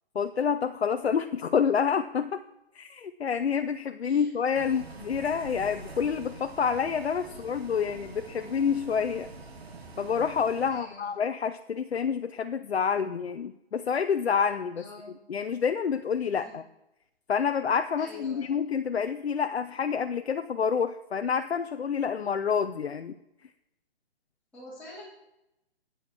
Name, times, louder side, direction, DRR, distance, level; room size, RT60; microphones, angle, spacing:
voice 1, 0.1-2.4 2.7-9.3 10.0-14.8 15.3-16.6 17.3-23.1, left 6 dB, 80° left, 9 dB, 0.7 m, -28 dB
voice 2, 4.0-4.8 7.2-7.4 9.5-9.7 10.7-11.1 14.8-15.1 16.4-16.5 18.0-18.5 24.5-25.0, left 2 dB, 5° left, -11 dB, 3.2 m, -47 dB
Bus, 4.6-10.7, right 3 dB, 75° right, 2.2 m, -45 dB
8.8 x 8.3 x 6.1 m, 0.86 s
figure-of-eight pair, 140°, 31 cm